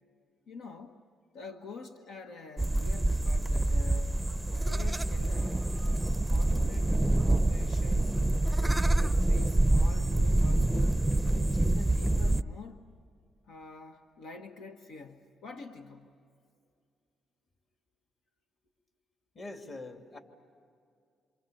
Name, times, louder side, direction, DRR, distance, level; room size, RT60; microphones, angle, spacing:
voice 1, 0.5-1.0 1.3-4.2 4.5-5.7 6.3-8.2 8.6-11.0 11.4-12.9 13.5-16.2, left 3 dB, 85° left, 4 dB, 1.4 m, -47 dB
sound 1, 2.6-12.4, right 1 dB, 5° right, 0.6 m, -26 dB
voice 2, 19.3-20.2, left 2 dB, 40° left, 4 dB, 3.0 m, -43 dB
28.0 x 27.0 x 7.1 m, 2.3 s
cardioid pair, 90°, 0 cm